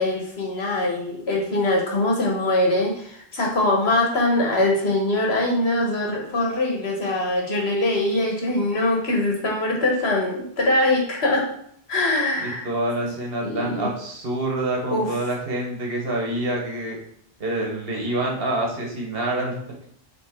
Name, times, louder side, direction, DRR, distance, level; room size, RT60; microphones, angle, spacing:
voice 1, 0.0-11.5 11.9-12.6 13.0-13.1 13.4-13.9 14.9-15.1, left 2 dB, 85° left, -1 dB, 1.7 m, -22 dB
voice 2, 12.4-17.0 17.4-19.6, right 1 dB, 65° right, -1 dB, 1.6 m, -27 dB
7.7 x 3.7 x 3.7 m, 0.68 s
omnidirectional pair, 1.0 m